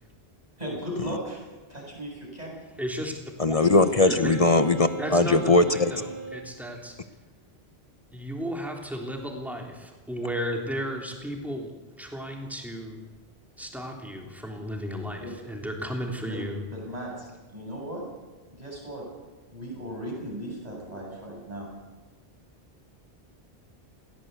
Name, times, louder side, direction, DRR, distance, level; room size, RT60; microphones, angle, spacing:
voice 1, 0.6-1.4 1.7-2.6 15.2-15.3 16.3-16.4 16.7-18.0 18.5-19.0 19.5-21.7, equal, 40° right, -2 dB, 7.9 m, -37 dB
voice 2, 2.8-3.1 3.5-3.6 4.1-4.4 5.0-7.0 8.1-11.7 12.0-13.0 13.6-16.6, equal, ahead, 1 dB, 3.4 m, -34 dB
voice 3, 3.4-5.9, left 2 dB, 35° left, 10 dB, 0.9 m, -20 dB
Wind instrument woodwind instrument, 3.6-6.5, right 2 dB, 90° left, 3.1 m, -37 dB
21.0 x 17.0 x 8.3 m, 1.3 s
omnidirectional pair, 1.1 m